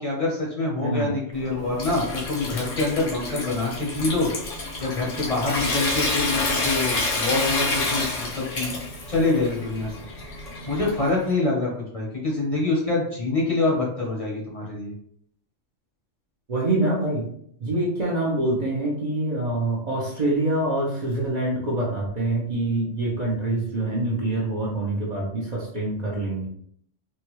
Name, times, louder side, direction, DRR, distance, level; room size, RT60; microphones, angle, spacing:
voice 1, 0.0-4.3 4.8-8.8 9.1-9.9 10.7-14.9, left 3 dB, 35° left, -4 dB, 0.7 m, -25 dB
voice 2, 0.8-1.1 16.5-17.3 17.6-26.5, right 2 dB, 45° right, -5 dB, 0.7 m, -25 dB
Water tap faucet / Sink (filling or washing) / Trickle dribble, 1.3-11.3, left 2 dB, 85° left, 1.2 m, -29 dB
3.6 x 2.2 x 3.0 m, 0.66 s
omnidirectional pair, 1.3 m